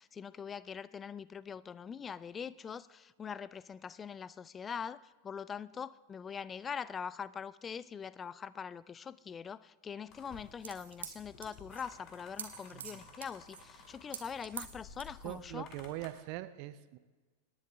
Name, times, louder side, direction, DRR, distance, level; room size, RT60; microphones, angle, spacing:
voice 1, 0.0-15.7, left 7 dB, 20° left, 0.4 m, -43 dB
sound 1, 10.1-16.1, left 5 dB, 35° left, 1.8 m, -55 dB
sound 2, 10.3-15.5, right 8 dB, 65° right, 1.3 m, -47 dB
voice 2, 15.2-17.0, right 15 dB, 45° right, 0.6 m, -42 dB
25.5 x 10.5 x 3.5 m
figure-of-eight pair, 90°, 0 cm